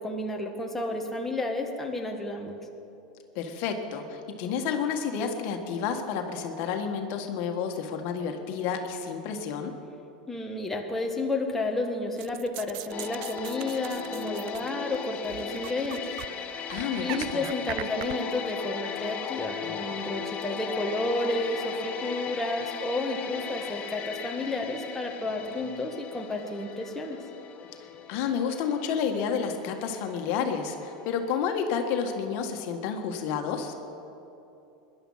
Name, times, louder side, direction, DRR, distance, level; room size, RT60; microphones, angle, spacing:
voice 1, 0.0-2.5 10.3-16.0 17.0-27.2, left 2 dB, 5° left, 1 dB, 1.6 m, -31 dB
voice 2, 3.3-9.7 16.7-17.4 28.1-33.7, left 6 dB, 55° left, 4 dB, 1.6 m, -30 dB
sound 1, 12.2-15.0 15.3-16.3 16.6-18.2, right 18 dB, 55° right, 0.4 m, -40 dB
sound 2, 12.9-31.7 32.0-32.2, left 7 dB, 35° left, 1.3 m, -38 dB
19.0 x 11.5 x 5.7 m, 2.8 s
supercardioid pair, 115°, 4 cm